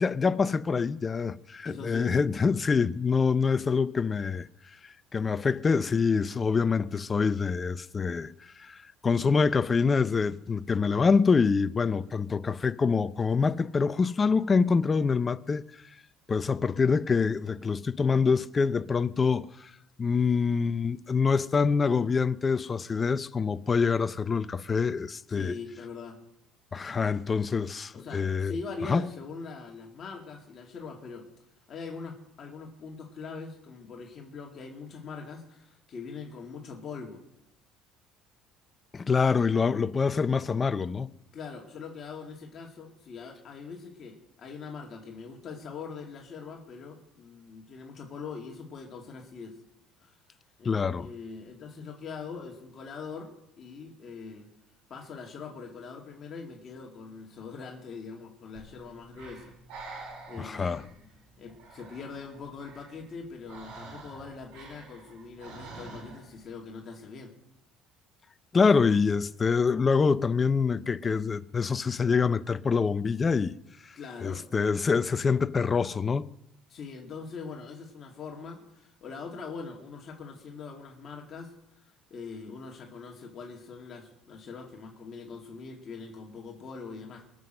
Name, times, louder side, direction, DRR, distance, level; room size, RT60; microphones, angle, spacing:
voice 1, 0.0-4.5 4.8-8.3 8.6-15.6 16.3-19.7 20.0-25.5 26.7-28.5 28.9-29.0 38.9-41.1 50.6-51.1 60.4-60.8 68.5-73.6 74.2-76.3, left 5 dB, 25° left, 0.5 m, -25 dB
voice 2, 1.6-2.2 25.3-26.2 27.9-31.3 31.7-37.2 41.3-49.6 50.0-50.2 50.6-54.5 54.9-59.5 59.8-61.0 61.4-67.3 74.0-74.4 76.7-81.5 81.8-87.2, left 4 dB, 40° left, 2.3 m, -42 dB
Breathing, 58.5-66.4, right 3 dB, 80° right, 4.9 m, -48 dB
23.0 x 7.7 x 6.6 m
cardioid pair, 120°, 0 cm